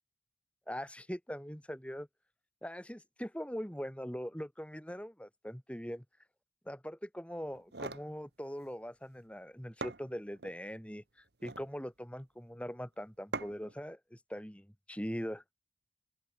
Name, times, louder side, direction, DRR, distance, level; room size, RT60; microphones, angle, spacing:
voice 1, 0.7-2.1 2.6-6.0 6.7-15.4, equal, 5° left, 2.3 m, -42 dB
sound 1, 7.5-8.1 9.4-9.5 9.8-10.6 11.3-11.7 13.3-13.8, right 3 dB, 65° right, 1.6 m, -42 dB
open air
head